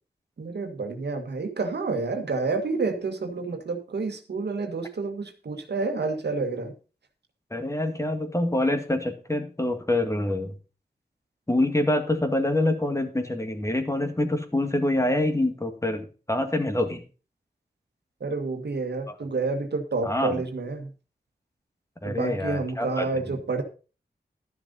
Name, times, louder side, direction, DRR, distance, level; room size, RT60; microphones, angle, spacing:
voice 1, 0.4-6.7 18.2-20.9 22.0-23.6, right 3 dB, 75° right, 6 dB, 1.8 m, -29 dB
voice 2, 7.5-10.5 11.5-17.0 19.1-19.2 20.0-20.4 22.0-23.1, left 1 dB, 15° left, 6 dB, 2.0 m, -26 dB
12.5 x 6.7 x 5.5 m, 0.35 s
wide cardioid pair, 85°, 17 cm